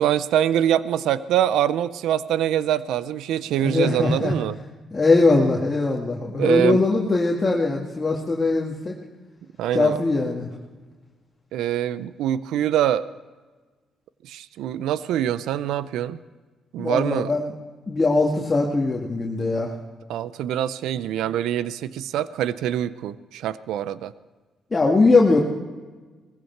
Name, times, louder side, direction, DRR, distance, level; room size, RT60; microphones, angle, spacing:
voice 1, 0.0-4.6 6.4-6.8 9.6-10.0 11.5-13.0 14.2-16.2 16.7-17.3 20.1-24.1, right 11 dB, 85° right, 16 dB, 0.5 m, -24 dB
voice 2, 3.6-4.3 4.9-8.9 9.7-10.5 16.8-17.5 17.9-19.7 24.7-25.4, left 3 dB, 25° left, -2 dB, 2.0 m, -20 dB
19.5 x 15.5 x 4.6 m, 1.4 s
cardioid pair, 90°, 0 cm